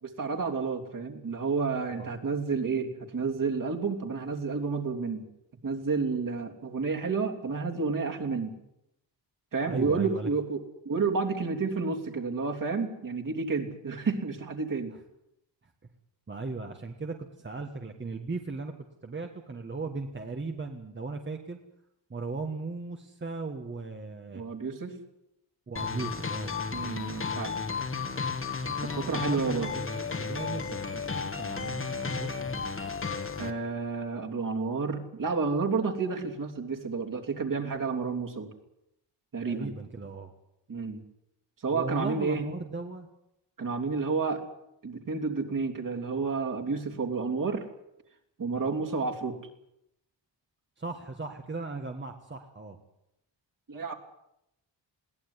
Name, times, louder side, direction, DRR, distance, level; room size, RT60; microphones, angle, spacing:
voice 1, 0.0-5.3 5.6-8.6 9.5-14.9 24.3-25.0 26.7-27.6 28.8-29.7 33.4-38.5 39.3-39.7 40.7-41.0 41.6-42.5 43.6-44.4 44.8-47.7 48.4-49.4 53.7-53.9, right 4 dB, 45° right, 2 dB, 3.3 m, -30 dB
voice 2, 1.9-2.2 9.6-10.3 15.6-15.7 16.3-18.7 19.0-21.6 22.1-24.4 25.7-26.6 28.8-32.4 39.4-40.3 41.7-43.1 48.5-48.7 50.8-52.8, right 3 dB, 25° right, 4 dB, 1.6 m, -37 dB
sound 1, 25.8-33.5, left 5 dB, 30° left, 1.7 m, -33 dB
21.5 x 17.5 x 9.8 m, 0.82 s
wide cardioid pair, 165°, 44 cm